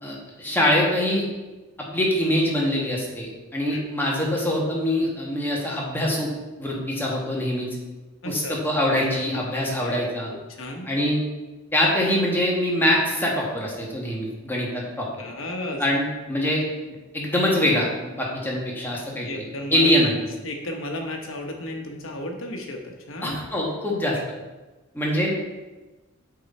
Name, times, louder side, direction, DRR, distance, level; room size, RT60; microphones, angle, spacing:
voice 1, 0.0-1.2 1.9-6.3 6.6-7.7 8.2-10.3 10.9-11.2 11.7-15.1 15.8-16.6 17.1-19.3 19.7-20.1 23.2-24.2 24.9-25.3, left 1 dB, 10° left, -3 dB, 1.3 m, -24 dB
voice 2, 8.2-8.5 9.8-10.0 10.5-10.9 15.2-15.8 19.2-20.1 20.4-23.4, left 1 dB, 70° left, 2 dB, 1.0 m, -33 dB
7.4 x 3.8 x 4.2 m, 1.1 s
head